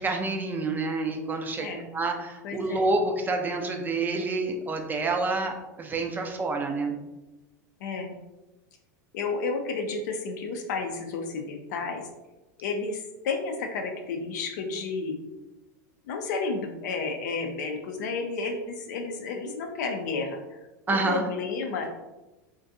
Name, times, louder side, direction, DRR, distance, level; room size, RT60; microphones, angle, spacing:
voice 1, 0.0-1.7 1.9-6.9 20.9-21.2, right 3 dB, 20° right, 3 dB, 0.3 m, -28 dB
voice 2, 2.4-2.9 7.8-8.2 9.1-12.0 12.6-15.2 16.1-20.6 20.9-21.9, left 4 dB, 70° left, 3 dB, 0.4 m, -31 dB
2.5 x 2.2 x 2.5 m, 1.1 s
hypercardioid pair, 100°, 10 cm